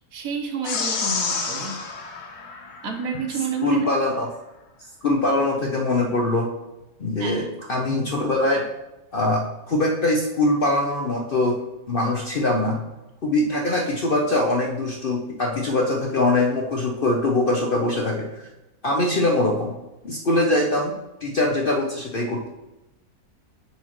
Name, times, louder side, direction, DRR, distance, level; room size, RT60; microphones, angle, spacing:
voice 1, 0.1-1.8 2.8-3.9 7.2-7.7, right 6 dB, 70° right, 4 dB, 1.2 m, -30 dB
sound 1, 0.6-3.3, left 5 dB, 85° left, 1.5 m, -29 dB
voice 2, 3.6-4.3 5.0-6.5 7.0-8.6 9.1-9.4 9.7-11.6 11.9-12.8 13.2-18.5 18.8-19.7 20.0-20.9 21.2-22.5, left 2 dB, 50° left, 0 dB, 0.7 m, -22 dB
9.7 x 4.3 x 3.0 m, 0.97 s
omnidirectional pair, 1.6 m